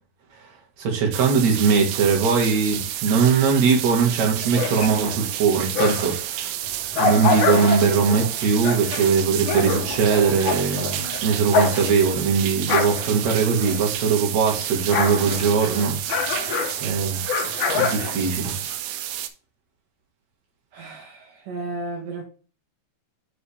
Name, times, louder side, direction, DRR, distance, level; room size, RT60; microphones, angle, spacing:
voice 1, 0.8-6.5 7.0-16.2 16.8-17.2 17.7-18.6, right 5 dB, 50° right, 2.9 m, -21 dB
sound 1, 1.1-19.3, right 12 dB, 85° right, 2.9 m, -30 dB
sound 2, 4.4-6.3 6.6-14.2 14.5-18.8, left 5 dB, 70° left, 1.9 m, -27 dB
voice 2, 20.7-22.2, right 2 dB, 65° right, 2.5 m, -33 dB
10.0 x 4.0 x 3.4 m
omnidirectional pair, 4.7 m